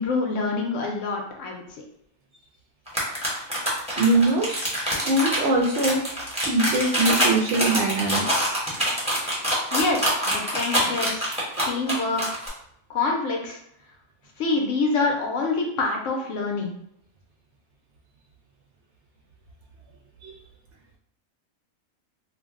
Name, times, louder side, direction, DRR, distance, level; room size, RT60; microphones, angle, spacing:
voice 1, 0.0-1.6 9.7-11.3 11.7-12.4 12.9-13.6 14.4-16.7, left 3 dB, 70° left, 1 dB, 0.9 m, -26 dB
sound 1, 2.9-12.5, equal, 5° right, 0.7 m, -25 dB
voice 2, 4.0-4.6 5.0-6.0 6.5-8.5 20.2-20.3, right 2 dB, 65° right, 0 dB, 0.8 m, -22 dB
2.5 x 2.1 x 3.5 m, 0.70 s
omnidirectional pair, 1.4 m